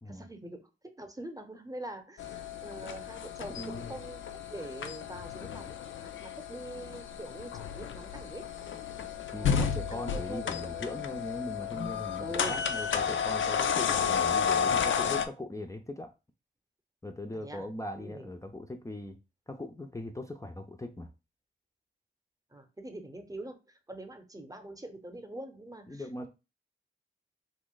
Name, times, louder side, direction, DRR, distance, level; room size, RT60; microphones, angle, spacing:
voice 1, 0.0-4.2 4.5-8.4 9.4-11.0 12.2-12.6 17.3-17.7 17.9-18.3 22.5-26.3, right 1 dB, 15° right, 0.8 m, -44 dB
sound 1, 2.2-15.3, left 7 dB, 65° left, 0.4 m, -32 dB
voice 2, 3.6-3.9 9.3-16.1 17.0-19.2 19.5-21.1 25.9-26.3, left 1 dB, 15° left, 0.5 m, -40 dB
2.5 x 2.2 x 3.8 m
cardioid pair, 45°, 21 cm